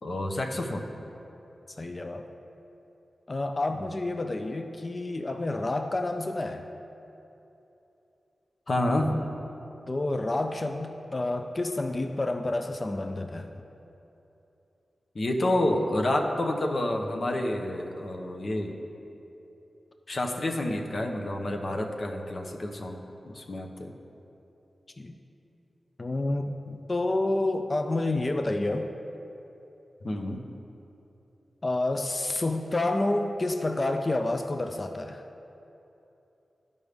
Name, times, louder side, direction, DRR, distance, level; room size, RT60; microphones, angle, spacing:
voice 1, 0.0-0.8 3.8-3.9 8.7-9.2 15.1-18.8 20.1-23.0 23.3-23.9 26.7-26.8 30.0-30.4, left 1 dB, 55° left, 2 dB, 0.8 m, -29 dB
voice 2, 1.8-2.3 3.3-6.7 9.9-13.5 25.0-25.2 26.0-26.6 26.9-28.9 31.6-35.2, left 2 dB, 40° left, 6 dB, 0.4 m, -29 dB
12.0 x 5.3 x 3.4 m, 3.0 s
cardioid pair, 60°, 0 cm